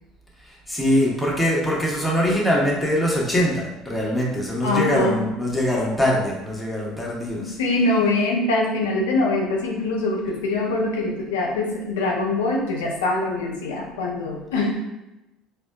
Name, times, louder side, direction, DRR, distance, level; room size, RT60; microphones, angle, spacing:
voice 1, 0.7-7.6, equal, 10° left, -4 dB, 1.0 m, -22 dB
voice 2, 4.6-5.2 7.3-14.8, left 2 dB, 85° left, 0 dB, 0.6 m, -23 dB
4.2 x 2.1 x 2.3 m, 0.98 s
hypercardioid pair, 70°, 0 cm